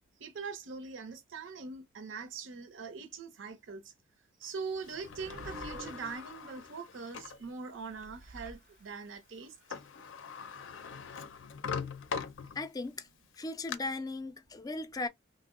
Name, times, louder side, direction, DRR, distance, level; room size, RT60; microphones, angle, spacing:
voice 1, 0.2-3.9 4.4-9.6, right 5 dB, 90° right, 0.6 m, -42 dB
sound 1, 4.7-6.7 7.8-9.3, right 2 dB, 45° right, 0.4 m, -49 dB
Sliding door, 4.8-7.4 8.0-8.1 9.4-9.5 9.7-12.9 13.3-13.8, left 6 dB, 80° left, 0.4 m, -41 dB
voice 2, 12.6-13.1 13.4-15.1, left 3 dB, 20° left, 0.3 m, -37 dB
2.9 x 2.0 x 3.6 m
head